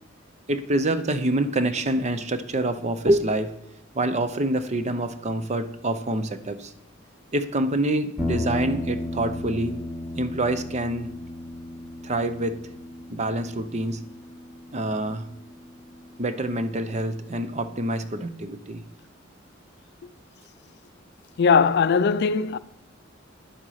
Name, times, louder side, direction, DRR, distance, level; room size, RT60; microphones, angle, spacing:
voice 1, 0.5-3.5 3.9-6.7 7.3-9.8 10.2-11.1 12.0-12.6 13.1-14.0 14.7-15.3 16.2-18.8, right 1 dB, 35° right, 0.7 m, -26 dB
sound 1, 8.2-16.5, left 1 dB, 5° right, 1.3 m, -35 dB
voice 2, 21.4-22.6, left 5 dB, 55° left, 0.4 m, -19 dB
10.0 x 7.8 x 5.7 m
head